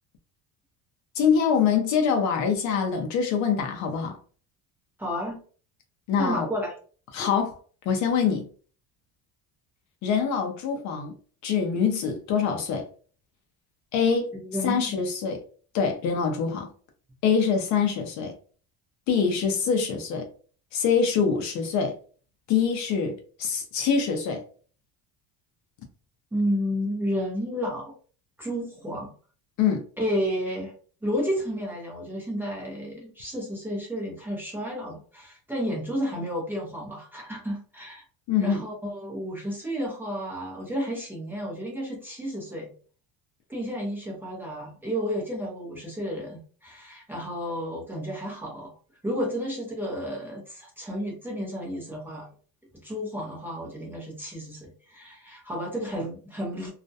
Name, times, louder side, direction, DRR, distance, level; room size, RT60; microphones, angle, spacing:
voice 1, 1.2-4.2 6.1-6.5 7.1-7.6 7.9-8.5 10.0-11.1 11.4-12.9 13.9-14.3 14.6-15.4 15.7-16.7 17.2-18.3 19.1-20.3 20.7-22.0 22.5-24.4 29.6-29.8 38.3-38.6, left 6 dB, 50° left, 0.5 m, -24 dB
voice 2, 5.0-5.4 6.2-6.7 14.3-14.9 26.3-27.9 28.4-29.1 30.0-30.7 31.0-38.0 38.4-42.7 43.5-48.7 49.0-52.3 52.8-56.7, equal, 5° right, 0.6 m, -31 dB
2.3 x 2.1 x 2.6 m
cardioid pair, 160°, 36 cm